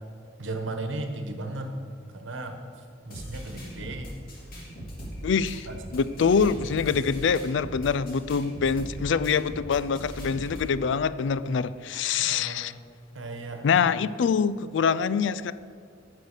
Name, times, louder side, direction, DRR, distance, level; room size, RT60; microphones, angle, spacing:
voice 1, 0.4-1.7 2.1-4.1 5.6-6.0 12.2-12.6 13.1-13.6, right 2 dB, 75° right, 5 dB, 1.2 m, -36 dB
sound 1, 3.1-10.7, equal, 50° left, 2.7 m, -39 dB
voice 2, 5.2-5.7 5.9-12.7 13.6-15.5, left 6 dB, 65° left, 16 dB, 0.3 m, -25 dB
9.4 x 6.5 x 6.6 m, 2.5 s
head